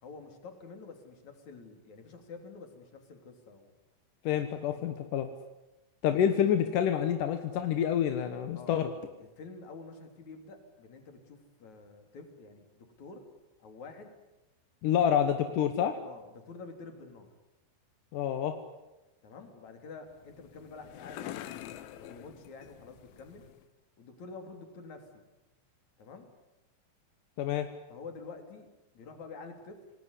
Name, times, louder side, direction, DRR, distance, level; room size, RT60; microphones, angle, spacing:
voice 1, 0.0-3.7 4.3-4.4 4.7-4.8 8.5-8.8 9.2-13.2 13.6-14.1 14.8-15.0 15.5-15.6 16.1-17.3 19.2-23.4 24.0-25.2 26.0-26.3 27.9-28.7 28.9-29.8, left 4 dB, 40° left, 5 dB, 4.2 m, -48 dB
voice 2, 4.2-5.3 6.0-8.9 14.8-16.0 18.1-18.6 27.4-27.7, left 9 dB, 65° left, 8 dB, 2.1 m, -28 dB
sound 1, 20.1-23.7, left 13 dB, 85° left, 3.5 m, -46 dB
28.0 x 19.5 x 9.9 m, 1.0 s
omnidirectional pair, 5.4 m